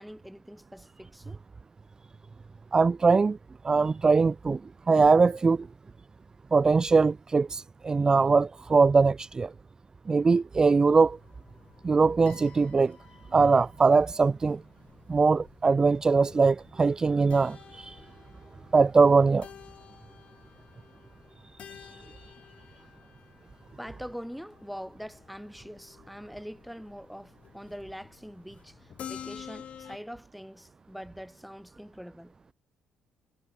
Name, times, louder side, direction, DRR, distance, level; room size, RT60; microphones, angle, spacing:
voice 1, 0.0-1.4 22.1-22.2 23.8-32.3, equal, ahead, 6.0 m, -43 dB
voice 2, 2.7-3.4 3.6-4.6 4.9-5.7 6.5-9.5 10.1-11.2 11.8-13.0 13.3-14.6 15.1-18.0 18.7-19.5 21.8-22.0, right 4 dB, 30° right, 0.4 m, -22 dB
sound 1, 10.9-30.0, left 8 dB, 55° left, 4.8 m, -51 dB
supercardioid pair, 65°, 3 cm